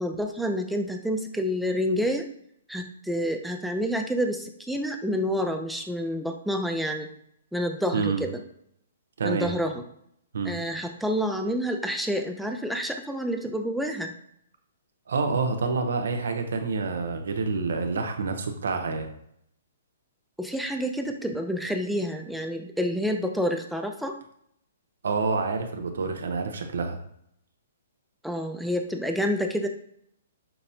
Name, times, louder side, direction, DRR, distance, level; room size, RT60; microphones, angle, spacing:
voice 1, 0.0-2.3 2.7-7.1 7.5-8.4 9.2-9.8 10.4-14.1 20.4-24.2 28.2-29.7, equal, ahead, 4 dB, 0.3 m, -28 dB
voice 2, 7.9-8.2 9.2-9.5 10.3-10.6 15.1-19.1 25.0-27.0, right 4 dB, 80° right, 5 dB, 0.7 m, -27 dB
5.7 x 2.0 x 2.7 m, 0.71 s
hypercardioid pair, 155°, 0 cm